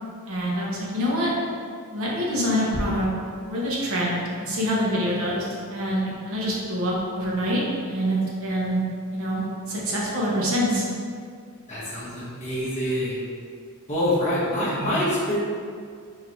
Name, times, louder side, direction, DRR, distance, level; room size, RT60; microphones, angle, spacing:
voice 1, 0.3-1.3 1.9-3.1 3.5-8.8 9.1-10.8, equal, 70° right, -4 dB, 1.0 m, -25 dB
voice 2, 11.7-13.2 13.9-15.4, left 1 dB, 30° left, -9 dB, 1.3 m, -25 dB
3.9 x 2.7 x 4.5 m, 2.2 s
head